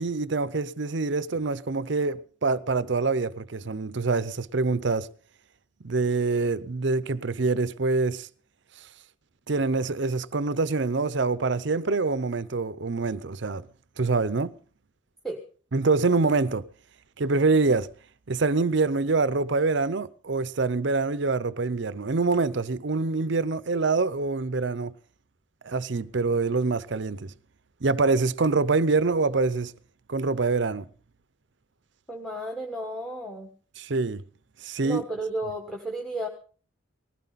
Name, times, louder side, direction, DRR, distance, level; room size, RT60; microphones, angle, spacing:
voice 1, 0.0-5.1 5.8-8.3 9.5-13.7 14.0-14.5 15.7-16.6 17.2-17.9 18.3-24.9 25.6-27.3 27.8-29.7 30.1-30.9 33.8-34.2 34.6-35.0, right 3 dB, 55° right, 0.6 m, -25 dB
voice 2, 32.1-33.5 34.8-36.3, right 1 dB, ahead, 1.4 m, -33 dB
19.5 x 16.0 x 4.1 m
head